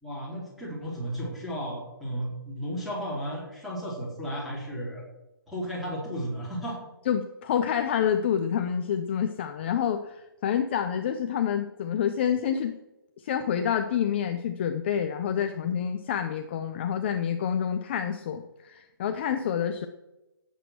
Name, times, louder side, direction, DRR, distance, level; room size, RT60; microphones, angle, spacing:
voice 1, 0.0-5.0 5.5-6.8, equal, ahead, -6 dB, 4.2 m, -34 dB
voice 2, 7.1-12.8 13.2-19.9, left 8 dB, 30° left, 7 dB, 0.8 m, -28 dB
16.5 x 8.4 x 6.3 m, 1.0 s
hypercardioid pair, 165°, 12 cm